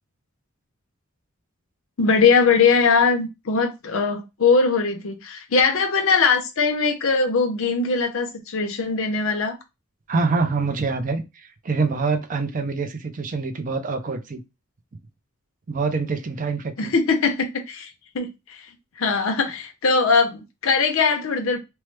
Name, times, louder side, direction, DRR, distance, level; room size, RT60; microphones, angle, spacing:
voice 1, 2.0-9.6 16.8-17.9 18.1-18.7 19.0-21.6, left 4 dB, 65° left, 0.6 m, -21 dB
voice 2, 10.1-14.4 15.7-16.9, right 4 dB, 40° right, 0.5 m, -25 dB
3.0 x 2.0 x 3.2 m
head